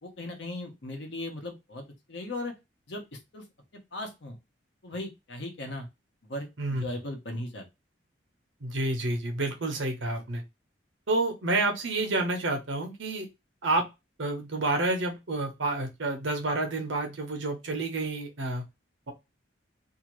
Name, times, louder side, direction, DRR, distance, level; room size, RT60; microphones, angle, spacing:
voice 1, 0.0-2.5 2.9-3.0 3.3-3.5 3.9-4.4 4.8-5.9 6.3-7.6, left 1 dB, 65° left, 4 dB, 0.9 m, -37 dB
voice 2, 8.6-10.4 11.1-13.3 13.6-13.8 14.2-18.6, right 2 dB, 75° right, 4 dB, 0.9 m, -29 dB
2.8 x 2.5 x 3.0 m, 0.23 s
head